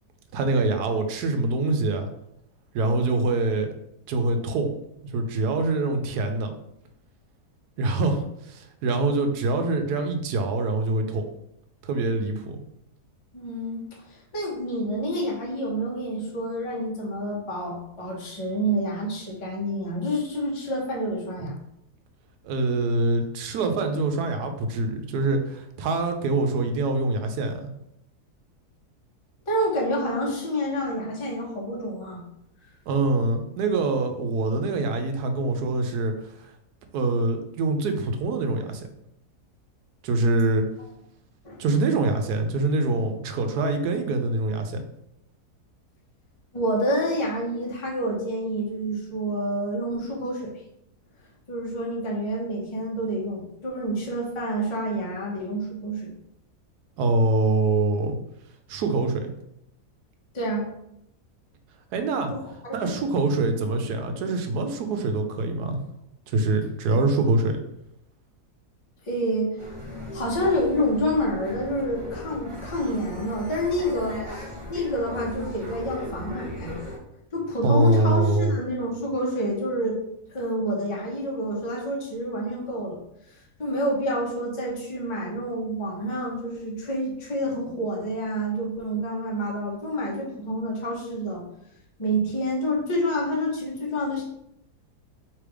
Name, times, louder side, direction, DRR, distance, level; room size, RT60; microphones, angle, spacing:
voice 1, 0.3-2.1 2.7-3.7 4.1-4.7 5.0-6.5 7.8-11.2 11.8-12.6 21.4-21.5 22.4-27.5 32.9-36.1 36.9-38.9 40.0-40.6 41.6-44.8 57.0-58.2 58.7-59.3 61.9-62.3 62.7-65.8 66.3-67.6 77.6-78.5, right 2 dB, 80° right, 6 dB, 1.2 m, -24 dB
voice 2, 13.3-13.8 14.1-21.6 29.5-32.2 41.4-41.6 46.5-50.5 51.5-56.1 60.3-60.7 62.3-62.8 69.1-69.6 69.9-76.8 77.3-80.0 80.3-83.0 83.6-91.4 92.0-94.2, equal, 20° left, -3 dB, 0.9 m, -28 dB
sound 1, 69.6-77.0, left 1 dB, 20° right, 1.0 m, -38 dB
3.3 x 3.2 x 4.8 m, 0.77 s
omnidirectional pair, 1.7 m